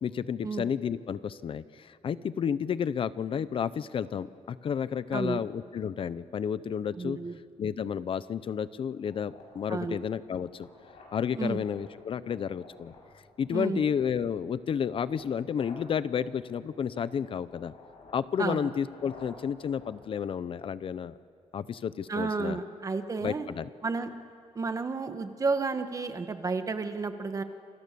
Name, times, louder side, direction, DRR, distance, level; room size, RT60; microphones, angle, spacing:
voice 1, 0.0-7.2 7.6-10.7 11.1-12.9 13.4-17.7 18.1-21.2 21.5-22.6 23.2-23.7, left 7 dB, 50° left, 15 dB, 0.6 m, -31 dB
voice 2, 7.0-7.4 9.7-10.0 11.4-11.6 13.5-13.8 18.4-18.7 22.1-23.5 23.8-24.1 24.5-27.4, right 4 dB, 30° right, 8 dB, 1.5 m, -31 dB
sound 1, 9.0-21.0, left 3 dB, 80° left, 7.9 m, -54 dB
28.0 x 27.5 x 6.9 m, 2.4 s
wide cardioid pair, 165°, 11 cm